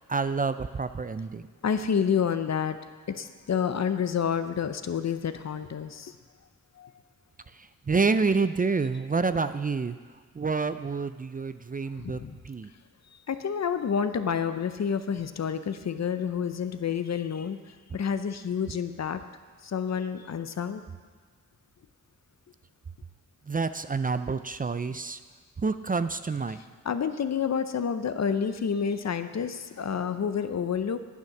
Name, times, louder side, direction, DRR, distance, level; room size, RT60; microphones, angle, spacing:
voice 1, 0.0-1.5 7.6-10.0 10.4-12.2 12.4-12.7 23.5-25.2 25.6-26.6, right 4 dB, 25° right, 11 dB, 0.5 m, -28 dB
voice 2, 1.6-2.8 3.1-6.2 6.8-6.9 12.0-12.4 13.3-19.2 19.6-20.8 24.9-25.0 26.8-31.0, left 7 dB, 55° left, 10 dB, 0.7 m, -29 dB
9.4 x 8.9 x 6.0 m, 1.5 s
cardioid pair, 55°, 31 cm